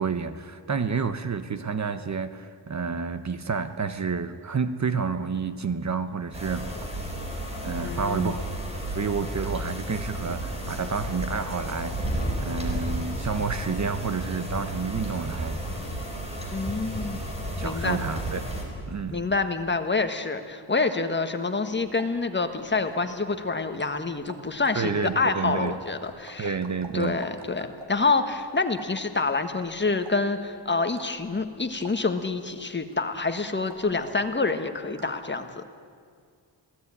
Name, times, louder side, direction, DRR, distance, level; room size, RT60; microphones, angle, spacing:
voice 1, 0.0-7.1 7.6-8.5 8.9-15.6 17.6-18.4 18.9-19.2 24.7-25.7 26.4-27.2, right 5 dB, 40° right, 11 dB, 1.0 m, -30 dB
sound 1, 6.3-18.6, right 1 dB, 15° right, 4.8 m, -32 dB
voice 2, 7.8-8.4 16.5-17.2 17.6-18.0 19.1-26.6 26.9-35.6, left 3 dB, 25° left, 7 dB, 1.5 m, -27 dB
sound 2, 21.7-35.3, right 3 dB, 65° right, 2.5 m, -48 dB
27.0 x 18.0 x 9.8 m, 2.1 s
wide cardioid pair, 160°, 43 cm